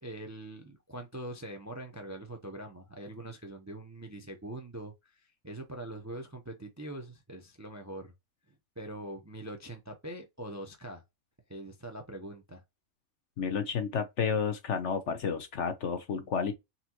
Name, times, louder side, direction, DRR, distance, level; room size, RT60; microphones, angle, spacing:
voice 1, 0.0-8.1 8.8-11.0 11.5-12.6, right 1 dB, 15° right, 0.6 m, -43 dB
voice 2, 13.4-16.5, left 6 dB, 60° left, 1.1 m, -31 dB
4.2 x 3.5 x 2.9 m
omnidirectional pair, 1.5 m